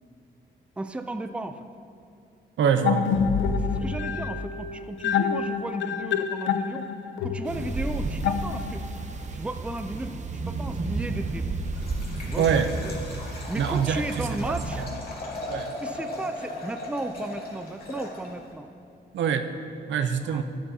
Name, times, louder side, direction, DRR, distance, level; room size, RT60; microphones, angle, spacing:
voice 1, 0.8-1.7 3.6-6.9 7.2-8.8 9.3-10.2 10.5-11.6 12.2-12.5 12.8-12.9 13.5-14.8 15.8-18.7 20.2-20.4, right 2 dB, 5° right, 8 dB, 0.4 m, -35 dB
voice 2, 2.6-3.1 12.4-12.7 13.6-14.9 15.5-15.7 19.1-19.5 19.9-20.4, right 7 dB, 80° right, 8 dB, 0.6 m, -25 dB
sound 1, 2.8-9.0, left 6 dB, 85° left, 0.5 m, -27 dB
sound 2, 7.4-14.9, right 3 dB, 40° right, 0.7 m, -32 dB
Liquid, 11.7-18.5, left 1 dB, 55° left, 2.1 m, -38 dB
12.5 x 9.6 x 2.8 m, 2.4 s
cardioid pair, 90°, 19 cm